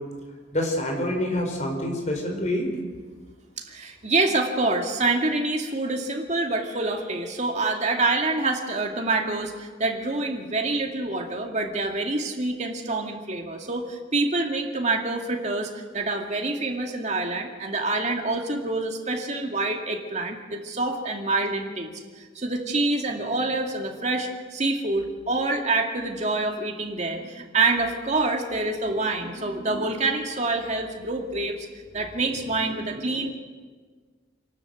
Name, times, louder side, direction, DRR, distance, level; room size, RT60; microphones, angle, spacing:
voice 1, 0.5-2.7, left 1 dB, 40° left, 2 dB, 4.7 m, -26 dB
voice 2, 3.7-31.7 31.9-33.3, right 2 dB, 40° right, 2 dB, 2.3 m, -26 dB
27.0 x 12.0 x 8.0 m, 1.5 s
head